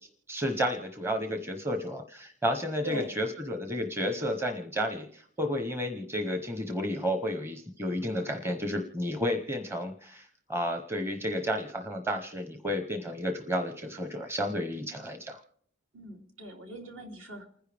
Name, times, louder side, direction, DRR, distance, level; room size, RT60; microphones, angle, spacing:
voice 1, 0.3-15.4, equal, 10° right, 6 dB, 0.9 m, -32 dB
voice 2, 15.9-17.5, right 1 dB, 65° right, 1 dB, 3.1 m, -41 dB
29.0 x 10.5 x 3.5 m, 0.63 s
head